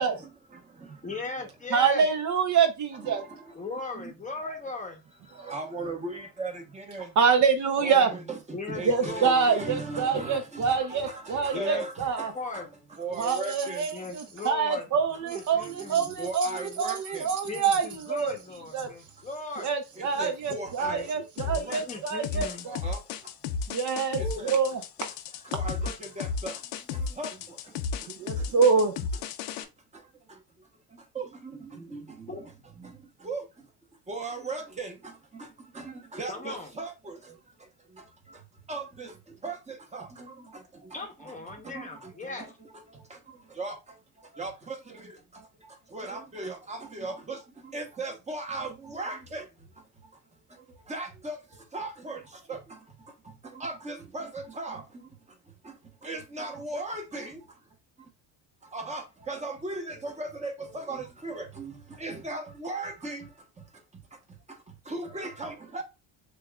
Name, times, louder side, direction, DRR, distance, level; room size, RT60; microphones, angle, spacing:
voice 1, 0.1-1.2 3.0-3.5 3.9-4.1 5.4-7.1 7.8-13.9 14.9-15.2 15.5-17.3 20.0-21.8 22.7-23.0 24.2-24.6 25.4-26.6 26.9-27.4 31.1-32.5 32.8-33.0 33.2-33.4 34.1-35.5 35.7-37.3 38.7-39.1 39.4-43.8 44.3-49.5 50.9-51.4 51.7-52.2 52.5-52.8 53.4-54.8 55.6-55.7 56.0-57.4 58.7-63.3 64.9-65.8, right 2 dB, 15° right, 0.9 m, -38 dB
voice 2, 1.0-2.1 3.5-5.0 8.5-9.5 11.5-11.9 12.3-12.7 13.9-14.9 15.2-16.1 17.5-19.7 21.8-22.7 24.2-24.4 32.3-32.4 36.3-36.7 40.9-42.5, left 3 dB, 20° left, 0.8 m, -38 dB
voice 3, 1.7-3.2 5.4-5.5 7.2-8.1 8.8-12.3 13.2-18.3 18.7-18.9 19.6-22.8 23.7-24.8 28.1-28.9, right 6 dB, 45° right, 0.7 m, -26 dB
sound 1, 21.4-29.6, left 5 dB, 85° left, 0.7 m, -33 dB
6.6 x 2.4 x 2.3 m
cardioid pair, 130°, 42 cm